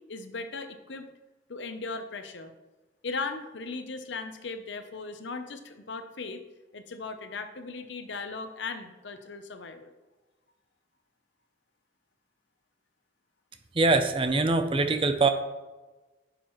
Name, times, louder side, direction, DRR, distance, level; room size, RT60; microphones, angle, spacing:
voice 1, 0.1-1.1 1.5-2.5 3.0-6.4 6.7-9.9, left 4 dB, 70° left, 8 dB, 0.8 m, -37 dB
voice 2, 13.8-15.3, right 3 dB, 30° right, 8 dB, 0.6 m, -23 dB
10.0 x 6.7 x 3.1 m, 1.2 s
head